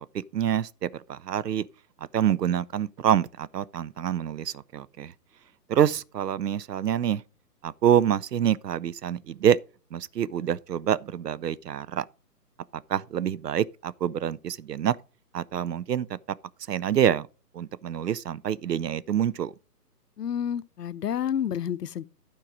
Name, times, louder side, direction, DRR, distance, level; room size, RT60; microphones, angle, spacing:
voice 1, 0.3-1.7 2.1-5.1 5.7-7.2 7.6-9.6 9.9-12.0 12.7-15.0 15.3-16.2 16.7-17.3 17.5-19.5, right 9 dB, 75° right, 0.7 m, -26 dB
voice 2, 20.2-22.0, left 9 dB, 75° left, 0.7 m, -29 dB
12.0 x 4.7 x 5.0 m
hypercardioid pair, 145°, 49 cm